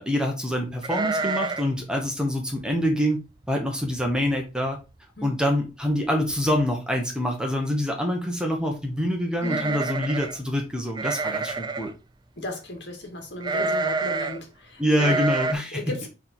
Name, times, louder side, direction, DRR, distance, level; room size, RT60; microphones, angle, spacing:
voice 1, 0.0-3.2 3.5-4.8 5.2-11.9 14.8-15.8, equal, 5° right, 1.2 m, -25 dB
sound 1, 0.8-1.8 2.0-2.1 2.6-2.9 3.4-3.5 3.8-4.3 4.7-4.8 5.9-6.0 6.3-6.7 9.4-10.4 11.0-11.9 13.4-14.4 14.9-15.5, right 3 dB, 25° right, 0.4 m, -28 dB
voice 2, 9.4-9.9 12.4-15.2 15.7-16.1, left 1 dB, 70° left, 2.0 m, -35 dB
6.6 x 3.6 x 4.5 m
head